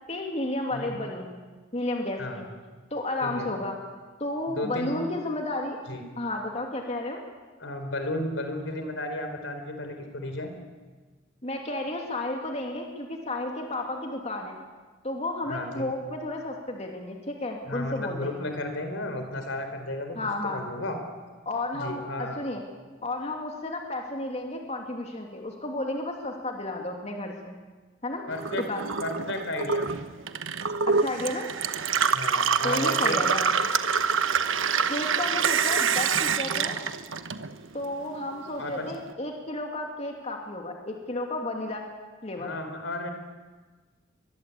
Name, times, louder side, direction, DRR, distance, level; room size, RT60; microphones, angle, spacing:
voice 1, 0.1-1.3 1.7-2.5 2.9-3.8 4.2-5.8 6.2-7.2 11.4-14.6 15.0-18.4 20.1-20.6 21.4-22.6 23.0-27.6 28.0-28.2 28.7-28.9 30.9-31.5 32.6-33.4 34.9-36.8 37.7-41.9 42.2-42.6, left 2 dB, 35° left, 1 dB, 2.7 m, -32 dB
voice 2, 4.6-5.0 5.9-6.0 7.6-10.5 15.5-15.9 17.7-20.2 20.5-21.0 21.7-22.4 28.3-28.7 29.0-29.9 32.1-33.4 38.6-38.9 42.4-43.1, left 1 dB, 75° left, 6 dB, 4.3 m, -33 dB
Gurgling / Water tap faucet / Sink (filling or washing), 28.3-37.8 38.1-39.0, right 6 dB, 90° right, 1.2 m, -26 dB
23.5 x 21.5 x 8.5 m, 1.3 s
head